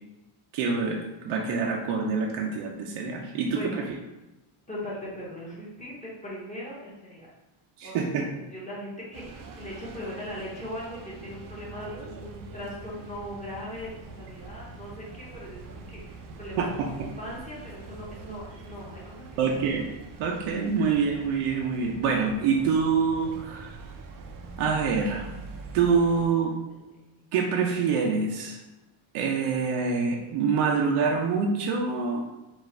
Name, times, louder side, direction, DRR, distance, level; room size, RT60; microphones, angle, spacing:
voice 1, 0.5-3.8 7.8-8.3 16.6-16.9 19.4-19.9 20.2-23.8 24.6-25.3 25.7-26.5 27.3-28.6 29.1-32.2, right 5 dB, 85° right, 0 dB, 0.7 m, -26 dB
voice 2, 4.7-7.3 7.8-8.3 8.5-19.5 26.7-26.8, left 1 dB, 15° left, -6 dB, 0.8 m, -39 dB
sound 1, 9.1-26.3, right 3 dB, 45° right, 0.5 m, -44 dB
4.6 x 2.4 x 4.3 m, 1.0 s
cardioid pair, 175°, 49 cm